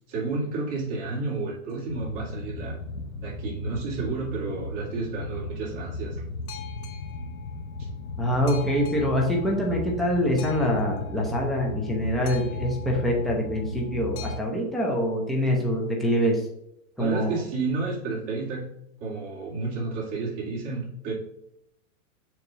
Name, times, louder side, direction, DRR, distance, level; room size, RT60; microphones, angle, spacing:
voice 1, 0.1-2.8 3.2-6.2 7.8-7.9 17.0-18.8 19.0-21.1, right 3 dB, 35° right, -4 dB, 2.5 m, -31 dB
Boat Water vehicle, 1.9-14.4, left 3 dB, 85° left, 1.2 m, -36 dB
voice 2, 8.2-16.4 17.0-17.4, equal, ahead, -2 dB, 0.6 m, -25 dB
6.9 x 3.0 x 5.8 m, 0.79 s
supercardioid pair, 155°, 42 cm